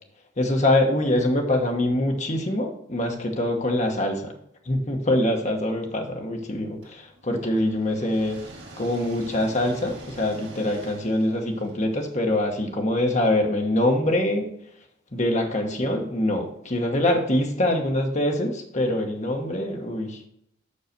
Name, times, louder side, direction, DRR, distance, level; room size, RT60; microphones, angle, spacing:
voice 1, 0.4-4.3 4.6-8.4 8.8-14.5 15.1-20.2, left 1 dB, 35° left, 2 dB, 1.1 m, -24 dB
sound 1, 6.8-12.7, right 2 dB, 55° right, 2.2 m, -45 dB
5.7 x 5.3 x 6.6 m, 0.71 s
head